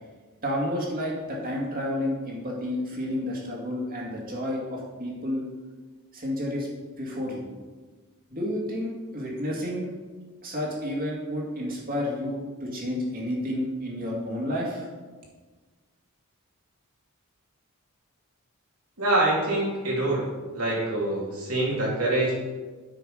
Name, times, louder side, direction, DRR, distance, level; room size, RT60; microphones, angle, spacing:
voice 1, 0.4-5.4 6.1-6.7 7.0-7.5 8.3-9.9 10.4-14.9, left 1 dB, 40° right, -2 dB, 2.3 m, -30 dB
voice 2, 19.0-20.3 20.5-22.4, right 2 dB, 75° right, -4 dB, 3.0 m, -25 dB
9.3 x 5.9 x 5.0 m, 1.4 s
head